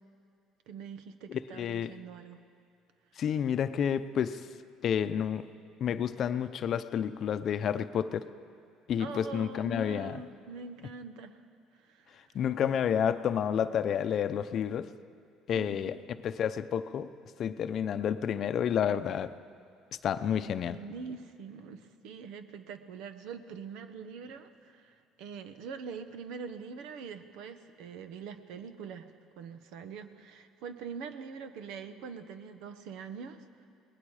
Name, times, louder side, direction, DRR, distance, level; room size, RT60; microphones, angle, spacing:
voice 1, 0.7-2.4 9.0-11.4 11.7-12.4 15.5-16.0 20.3-33.7, right 5 dB, 80° right, 9 dB, 1.2 m, -44 dB
voice 2, 1.3-1.9 3.2-4.4 4.8-5.5 5.8-8.3 8.9-10.2 12.3-14.9 15.5-16.0 16.2-17.1 17.4-19.3 20.0-20.8, left 8 dB, 50° left, 11 dB, 0.7 m, -30 dB
28.0 x 20.0 x 4.9 m, 2.3 s
cardioid pair, 120°, 0 cm